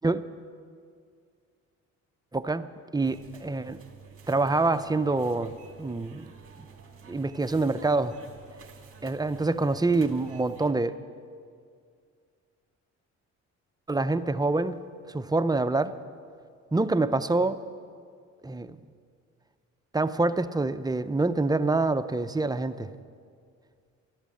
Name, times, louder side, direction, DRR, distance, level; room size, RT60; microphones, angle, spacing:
voice 1, 2.3-2.7 2.9-3.8 4.3-5.5 5.8-6.3 7.1-8.1 9.0-10.9 13.9-14.8 15.1-16.0 16.7-17.6 18.4-18.8 19.9-22.9, right 3 dB, 15° right, 11 dB, 0.5 m, -26 dB
sound 1, 3.0-10.7, right 5 dB, 45° right, 2.3 m, -50 dB
13.0 x 12.0 x 7.6 m, 2.2 s
cardioid pair, 90°, 30 cm